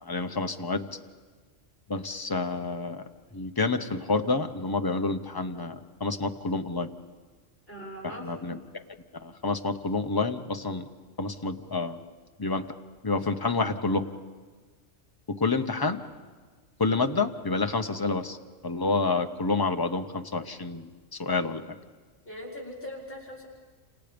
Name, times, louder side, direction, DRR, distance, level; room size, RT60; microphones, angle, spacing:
voice 1, 0.0-0.8 1.9-3.0 3.3-6.9 8.0-8.8 9.2-10.9 11.2-12.0 12.4-12.7 13.0-14.1 15.3-16.0 16.8-18.4 18.6-20.9 21.2-21.8, left 3 dB, 20° left, 7 dB, 0.8 m, -28 dB
voice 2, 7.7-8.3 22.2-23.5, equal, 50° left, -1 dB, 4.7 m, -40 dB
29.5 x 27.0 x 5.2 m, 1.4 s
omnidirectional pair, 1.2 m